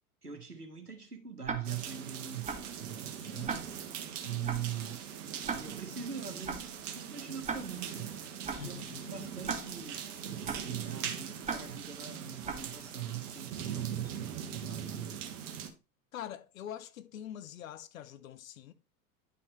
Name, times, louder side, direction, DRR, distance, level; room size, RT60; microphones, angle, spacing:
voice 1, 0.2-3.6 4.2-5.0 5.5-15.3, right 9 dB, 90° right, 1.4 m, -42 dB
Tick-tock, 1.4-1.9 2.5-2.8 3.5-3.9 4.5-4.8 5.5-5.9 6.5-6.8 7.5-7.9 8.5-8.8 9.5-9.9 10.5-10.8 11.4-11.9 12.4-12.8, right 5 dB, 15° right, 1.2 m, -39 dB
sound 1, 1.6-15.7, right 8 dB, 55° right, 1.5 m, -41 dB
sound 2, 7.7-12.7, left 5 dB, 80° left, 1.4 m, -58 dB
voice 2, 8.6-9.0 16.1-18.7, left 10 dB, 60° left, 0.8 m, -44 dB
10.0 x 5.8 x 3.2 m
figure-of-eight pair, 80°, 45 cm